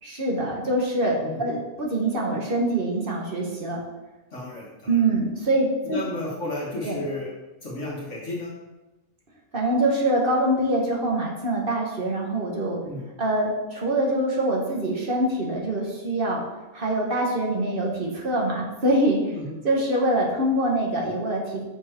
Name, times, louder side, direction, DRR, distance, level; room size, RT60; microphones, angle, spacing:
voice 1, 0.0-3.8 4.9-6.0 6.8-7.0 9.5-12.8 13.2-16.4 16.7-19.2 19.6-21.6, right 1 dB, 40° right, -2 dB, 1.6 m, -24 dB
voice 2, 4.3-5.0 5.8-7.3 7.6-8.5 12.8-13.0 19.3-19.5, left 2 dB, 60° left, -4 dB, 1.7 m, -33 dB
6.7 x 5.8 x 4.5 m, 1.1 s
omnidirectional pair, 1.4 m